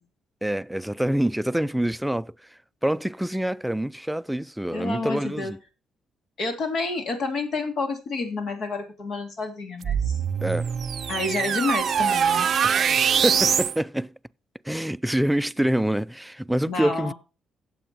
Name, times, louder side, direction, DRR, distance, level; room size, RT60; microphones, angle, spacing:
voice 1, 0.4-2.3 2.8-5.6 10.4-10.7 12.6-14.1 14.6-17.1, right 1 dB, 5° right, 0.4 m, -26 dB
voice 2, 4.7-5.5 6.4-10.2 11.1-12.5 16.6-17.1, left 3 dB, 65° left, 3.2 m, -29 dB
sound 1, 9.8-13.8, right 7 dB, 55° right, 0.5 m, -23 dB
17.0 x 7.8 x 2.9 m
cardioid pair, 90°, 0 cm